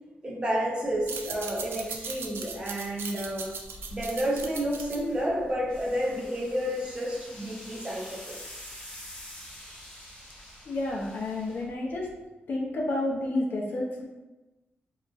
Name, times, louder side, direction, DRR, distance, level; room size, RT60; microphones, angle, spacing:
voice 1, 0.2-3.5 3.9-8.4, equal, 25° right, -3 dB, 0.6 m, -30 dB
sound 1, 0.9-6.1, right 5 dB, 75° right, 0.3 m, -39 dB
sound 2, 3.6-12.3, equal, 20° left, 1.2 m, -47 dB
voice 2, 10.7-12.1 12.5-14.1, left 2 dB, 60° left, -3 dB, 0.5 m, -30 dB
2.8 x 2.4 x 2.3 m, 1.1 s
wide cardioid pair, 115°, 4 cm